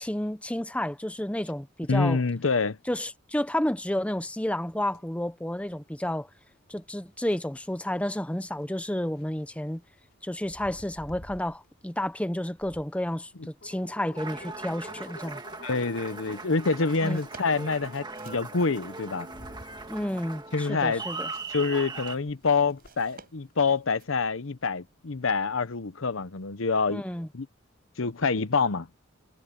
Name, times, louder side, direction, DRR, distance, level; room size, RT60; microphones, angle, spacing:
voice 1, 0.0-2.2 2.9-6.3 6.7-9.8 10.2-15.4 17.0-17.2 19.9-21.3 26.9-27.3, left 1 dB, 5° left, 0.7 m, -31 dB
voice 2, 1.9-2.8 15.6-19.3 20.5-21.0 21.5-27.0 27.3-27.5 28.0-28.9, left 4 dB, 70° left, 0.9 m, -26 dB
sound 1, 4.7-23.5, left 1 dB, 50° left, 5.7 m, -52 dB
sound 2, 13.7-24.2, right 4 dB, 45° right, 6.2 m, -57 dB
Applause, 14.2-22.2, right 3 dB, 20° right, 1.6 m, -40 dB
head